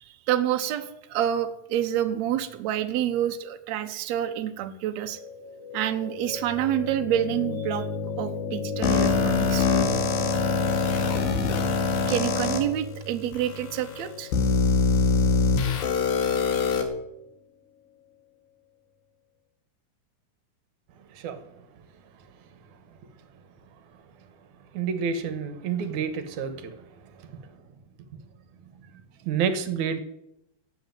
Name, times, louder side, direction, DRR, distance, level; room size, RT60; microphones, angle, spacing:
voice 1, 0.0-5.2 5.7-7.9 8.2-9.7 12.1-14.3, right 11 dB, 85° right, 7 dB, 1.5 m, -28 dB
sound 1, 5.0-17.1, left 2 dB, 40° left, 3.8 m, -34 dB
sound 2, 8.8-12.6 13.3-13.4 14.3-16.8, left 4 dB, 70° left, 3.6 m, -23 dB
voice 2, 24.8-26.5 29.3-30.0, right 6 dB, 65° right, 10 dB, 2.1 m, -28 dB
17.0 x 7.7 x 9.2 m, 0.84 s
omnidirectional pair, 4.6 m